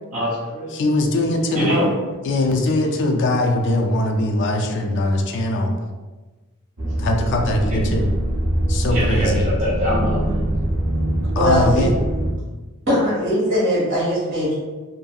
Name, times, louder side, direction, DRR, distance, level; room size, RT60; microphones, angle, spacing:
voice 1, 0.1-0.7 1.5-2.0 7.7-7.9 8.9-10.4, equal, 30° right, -9 dB, 0.6 m, -24 dB
voice 2, 0.7-1.7 2.2-5.7 7.0-8.1 8.7-9.4 11.4-11.9, left 2 dB, 55° left, 3 dB, 0.3 m, -21 dB
voice 3, 1.5-1.9 11.3-11.9 12.9-14.6, equal, 55° right, -7 dB, 1.4 m, -20 dB
sound 1, 6.8-12.3, right 1 dB, 80° right, 0.6 m, -23 dB
2.6 x 2.5 x 2.3 m, 1.2 s
head